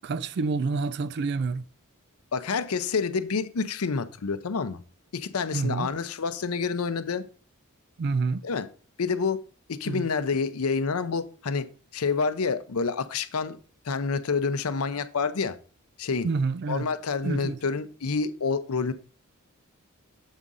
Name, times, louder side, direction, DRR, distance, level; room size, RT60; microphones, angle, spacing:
voice 1, 0.0-1.6 5.5-5.9 8.0-8.4 9.9-10.1 16.2-16.9 17.2-17.6, right 4 dB, 50° right, 0.4 m, -28 dB
voice 2, 2.3-4.8 5.1-7.2 8.4-8.7 9.0-9.4 9.7-11.7 11.9-13.6 13.8-15.6 16.0-16.3 16.7-18.9, left 5 dB, 80° left, 0.6 m, -28 dB
7.3 x 3.7 x 5.4 m
head